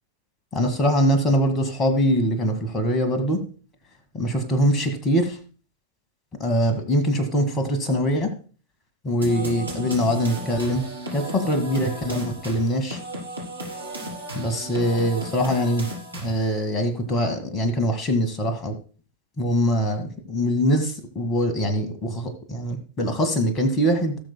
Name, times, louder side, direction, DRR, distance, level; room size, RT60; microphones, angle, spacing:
voice 1, 0.5-3.4 4.1-5.4 6.4-8.3 9.0-10.9 11.1-13.0 14.3-15.9 16.2-18.8 19.4-24.2, equal, 25° left, 6 dB, 2.1 m, -23 dB
sound 1, 9.2-16.6, right 1 dB, 85° right, 3.9 m, -34 dB
18.0 x 6.9 x 2.3 m, 0.38 s
figure-of-eight pair, 90°, 0 cm